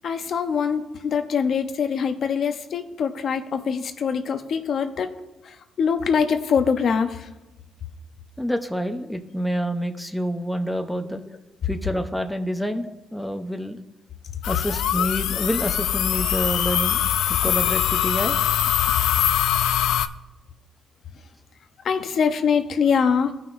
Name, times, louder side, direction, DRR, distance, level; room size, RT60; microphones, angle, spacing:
voice 1, 0.0-5.1 5.4-7.3 21.8-23.3, left 6 dB, 60° left, 7 dB, 0.7 m, -23 dB
voice 2, 8.4-11.2 11.6-12.9 13.1-13.8 14.5-17.0 17.3-18.4, equal, 5° left, 6 dB, 0.7 m, -27 dB
sound 1, 14.4-20.1, left 11 dB, 85° left, 0.4 m, -22 dB
16.0 x 5.7 x 2.6 m, 1.0 s
cardioid pair, 90°, 0 cm